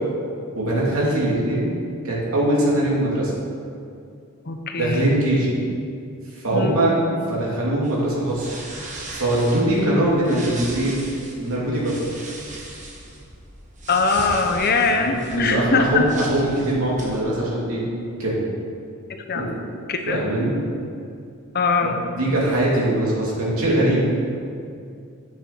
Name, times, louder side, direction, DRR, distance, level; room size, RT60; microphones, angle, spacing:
voice 1, 0.5-1.7 2.0-3.3 4.8-5.5 6.3-7.0 7.3-8.5 9.1-11.0 11.4-12.0 14.8-17.8 18.2-18.4 19.3-19.5 20.1-20.5 21.8-24.1, right 1 dB, 75° right, -5 dB, 3.0 m, -22 dB
voice 2, 4.5-5.1 6.5-6.9 13.9-16.1 19.3-19.6 19.9-20.2 21.5-22.0, left 4 dB, 45° left, 4 dB, 0.9 m, -21 dB
sound 1, 7.8-17.2, right 2 dB, 35° right, 1.5 m, -38 dB
8.8 x 7.2 x 6.9 m, 2.4 s
head